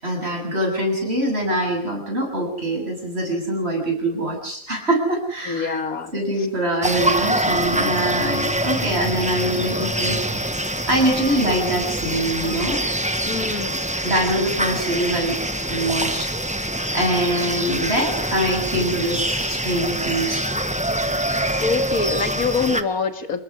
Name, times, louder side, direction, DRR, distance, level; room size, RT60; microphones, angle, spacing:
voice 1, 0.0-5.8 6.1-10.2 10.9-12.8 14.0-15.4 15.7-16.3 16.9-20.5, right 1 dB, 45° right, 1 dB, 7.9 m, -23 dB
voice 2, 5.5-6.1 13.3-13.8 21.6-23.4, left 5 dB, 85° left, 8 dB, 2.3 m, -25 dB
sound 1, 6.8-22.8, right 1 dB, 5° right, 1.1 m, -25 dB
28.5 x 19.0 x 6.4 m, 0.62 s
omnidirectional pair, 1.5 m